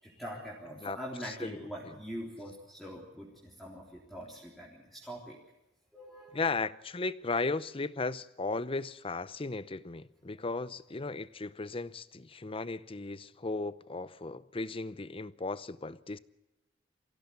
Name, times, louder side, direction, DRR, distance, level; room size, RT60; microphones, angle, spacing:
voice 1, 0.0-5.4 5.9-6.4, equal, ahead, 3.8 m, -43 dB
voice 2, 1.2-2.0 6.3-16.2, left 3 dB, 30° left, 0.7 m, -36 dB
24.0 x 16.5 x 8.4 m
head